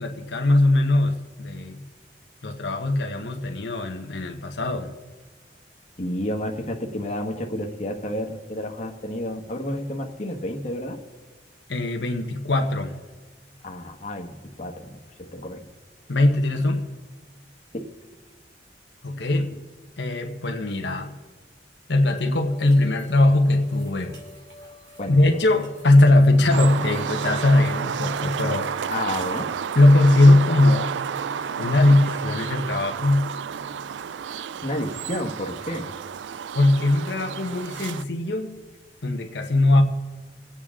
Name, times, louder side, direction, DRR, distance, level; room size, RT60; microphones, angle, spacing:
voice 1, 0.0-1.8 2.4-4.9 11.7-12.9 16.1-16.9 19.0-19.6 20.0-21.1 21.9-24.2 25.1-28.7 29.7-30.9 31.6-33.3 36.5-38.6 39.0-39.8, left 2 dB, 80° left, 3 dB, 1.2 m, -20 dB
voice 2, 6.0-11.0 13.6-15.6 25.0-25.1 28.9-29.5 34.6-35.9, left 1 dB, 40° left, 1 dB, 1.3 m, -31 dB
sound 1, 22.3-28.1, left 1 dB, 70° right, 3.3 m, -48 dB
sound 2, 26.5-38.0, right 7 dB, 90° right, 0.3 m, -31 dB
24.5 x 8.5 x 3.7 m, 1.4 s
head